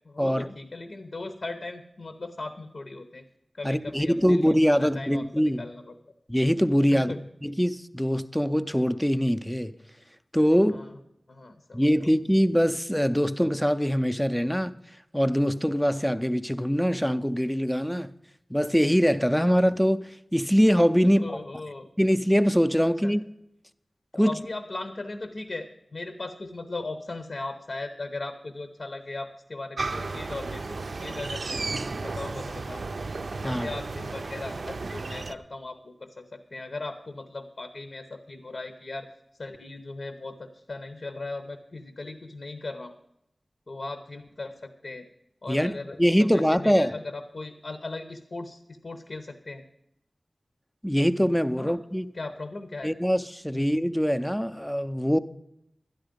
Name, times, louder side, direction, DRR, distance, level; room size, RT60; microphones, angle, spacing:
voice 1, 0.0-3.2 3.5-5.9 6.9-7.2 10.6-10.9 11.3-12.1 21.0-21.9 23.0-23.1 24.1-31.7 32.0-33.0 33.4-39.1 39.4-43.0 43.7-45.1 45.4-49.6 51.6-51.8 52.1-52.9 53.5-53.7, left 2 dB, 65° left, 0.9 m, -38 dB
voice 2, 3.6-5.6 6.3-7.1 7.4-9.8 10.3-10.8 11.7-14.8 15.1-18.1 18.5-21.2 22.0-23.2 24.2-24.3 33.4-33.7 45.5-46.9 50.8-52.1 52.8-55.2, equal, 5° left, 0.5 m, -23 dB
sound 1, 29.8-35.4, right 3 dB, 70° right, 0.5 m, -33 dB
12.0 x 10.5 x 5.2 m
wide cardioid pair, 85°, 0 cm